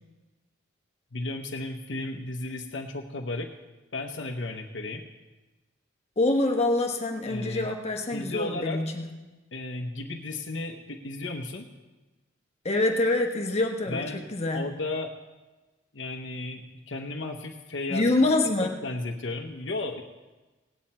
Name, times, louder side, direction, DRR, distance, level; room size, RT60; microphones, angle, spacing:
voice 1, 1.1-3.5 3.9-5.0 7.3-7.7 8.1-8.8 9.5-11.6 13.9-14.3 14.5-15.1 15.9-18.1 18.6-20.0, left 2 dB, 65° left, 3 dB, 0.9 m, -34 dB
voice 2, 6.2-9.1 12.6-14.7 17.9-18.8, left 2 dB, 35° left, 3 dB, 1.1 m, -25 dB
17.5 x 9.3 x 4.3 m, 1.2 s
head